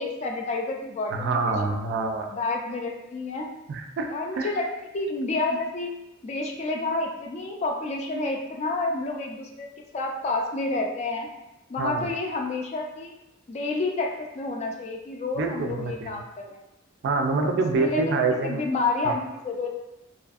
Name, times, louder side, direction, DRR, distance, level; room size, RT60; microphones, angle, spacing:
voice 1, 0.0-1.8 2.3-3.5 4.1-4.7 4.9-5.9 6.2-9.7 9.9-11.3 11.7-13.1 13.5-16.6 17.5-18.2 18.4-19.8, left 3 dB, 35° left, 1 dB, 0.3 m, -29 dB
voice 2, 1.1-2.3 3.7-4.1 4.4-4.5 11.8-12.1 15.4-16.1 17.0-18.6 19.0-19.1, right 3 dB, 60° right, 3 dB, 0.3 m, -26 dB
2.6 x 2.4 x 2.3 m, 0.94 s
head